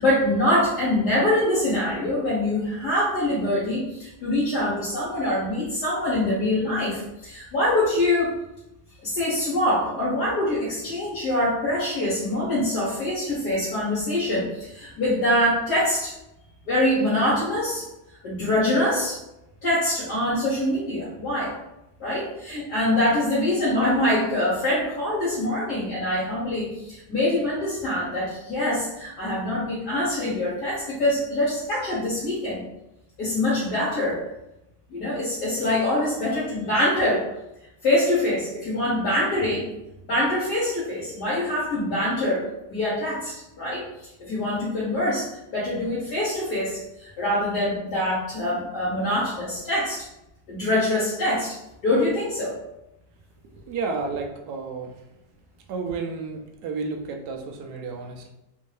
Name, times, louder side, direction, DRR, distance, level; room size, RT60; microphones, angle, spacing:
voice 1, 0.0-8.3 9.0-16.1 16.7-17.8 18.2-19.2 19.6-21.5 22.0-32.6 33.2-34.2 34.9-37.2 37.8-39.7 40.1-43.8 44.2-50.0 50.5-51.6 51.8-52.5, left 1 dB, 65° left, -9 dB, 1.5 m, -24 dB
voice 2, 53.5-55.0 55.7-58.3, right 4 dB, 70° right, 3 dB, 1.0 m, -31 dB
3.6 x 2.6 x 3.1 m, 0.90 s
omnidirectional pair, 1.9 m